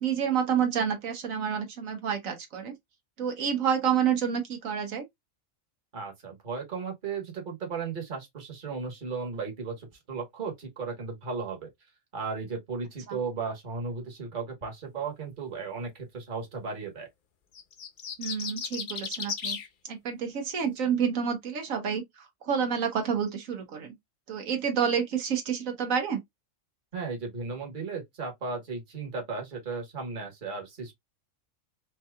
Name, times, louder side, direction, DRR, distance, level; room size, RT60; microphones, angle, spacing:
voice 1, 0.0-2.7 3.2-5.0 13.1-13.2 18.2-19.6 19.9-22.0 22.4-23.9 24.3-26.2, right 7 dB, 85° right, 1.4 m, -28 dB
voice 2, 5.9-11.7 12.1-17.1 26.9-30.9, right 4 dB, 40° right, 1.4 m, -35 dB
sound 1, 17.6-19.7, left 7 dB, 50° left, 0.7 m, -35 dB
4.5 x 2.9 x 2.2 m
omnidirectional pair, 1.4 m